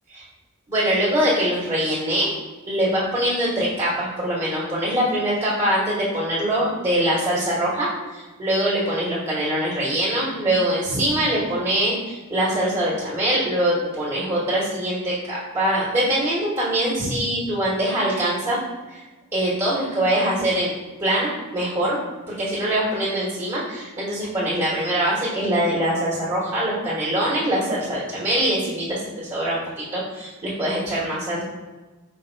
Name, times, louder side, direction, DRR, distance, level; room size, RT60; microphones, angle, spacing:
voice 1, 0.7-2.4 2.7-18.6 18.9-19.0 19.3-20.7 21.0-22.0 22.3-31.4, right 1 dB, 20° right, -7 dB, 1.2 m, -23 dB
4.8 x 2.3 x 4.4 m, 1.2 s
head